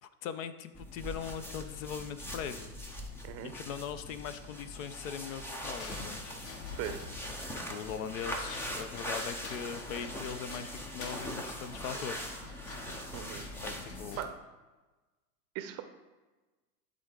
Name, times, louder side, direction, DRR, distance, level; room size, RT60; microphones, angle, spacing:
voice 1, 0.0-2.7 3.4-6.4 7.5-12.3 13.6-14.2, left 7 dB, 55° left, 12 dB, 0.7 m, -40 dB
sound 1, 0.7-14.3, equal, 5° left, 0.3 m, -41 dB
sound 2, 5.8-14.3, left 3 dB, 30° left, 0.9 m, -49 dB
Boom, 6.5-9.5, left 6 dB, 80° left, 2.4 m, -50 dB
voice 2, 6.7-7.0 13.1-13.4 14.2-14.3 15.5-15.8, right 11 dB, 35° right, 8 dB, 0.6 m, -38 dB
11.0 x 3.8 x 3.7 m, 1.2 s
hypercardioid pair, 110°, 47 cm